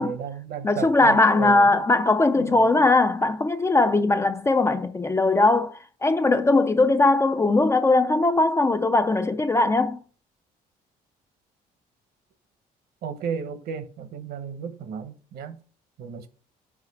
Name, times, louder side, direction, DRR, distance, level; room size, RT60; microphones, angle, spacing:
voice 1, 0.0-1.8 2.4-2.9 13.0-15.6 16.0-16.3, right 7 dB, 65° right, 1.0 m, -34 dB
voice 2, 0.6-10.0, left 2 dB, 15° left, 0.4 m, -20 dB
4.9 x 4.6 x 4.8 m
cardioid pair, 110°, 17 cm